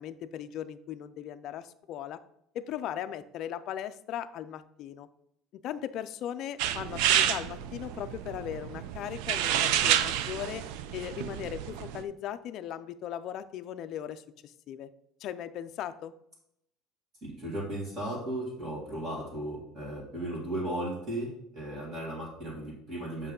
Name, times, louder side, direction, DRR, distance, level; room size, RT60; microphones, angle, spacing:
voice 1, 0.0-2.2 2.5-5.1 5.5-10.7 10.9-14.9 15.2-16.1, left 10 dB, 40° left, 10 dB, 0.4 m, -38 dB
sound 1, 6.6-12.0, right 10 dB, 75° right, 0.5 m, -29 dB
voice 2, 17.2-23.3, right 1 dB, 25° right, -4 dB, 2.0 m, -36 dB
8.1 x 5.5 x 3.7 m, 0.75 s
cardioid pair, 180°, 0 cm